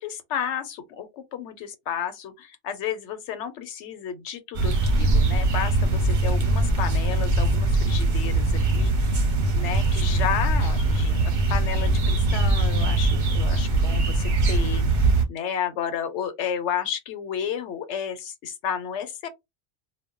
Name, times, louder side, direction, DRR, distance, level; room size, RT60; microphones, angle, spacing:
voice 1, 0.0-9.2 9.5-19.3, left 8 dB, 85° left, 0.9 m, -32 dB
sound 1, 4.5-15.2, right 2 dB, 50° right, 0.8 m, -22 dB
2.2 x 2.0 x 3.6 m
omnidirectional pair, 1.2 m